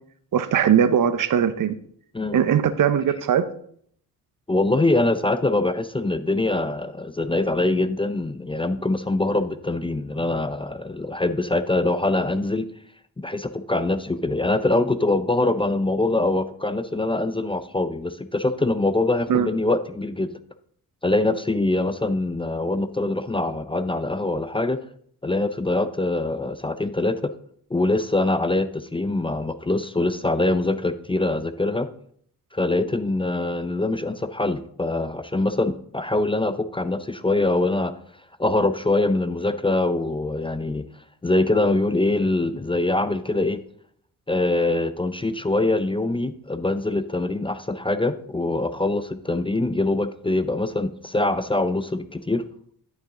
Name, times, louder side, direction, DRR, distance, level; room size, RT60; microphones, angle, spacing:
voice 1, 0.3-1.8 2.3-3.4 19.3-19.5, right 8 dB, 60° right, 13 dB, 0.8 m, -20 dB
voice 2, 4.5-12.7 13.2-20.3 21.0-24.8 25.2-27.3 27.7-31.9 32.5-37.9 38.4-40.8 41.2-43.6 44.3-52.4, left 2 dB, 15° left, 12 dB, 0.5 m, -23 dB
11.5 x 5.9 x 3.8 m, 0.63 s
cardioid pair, 70°, 37 cm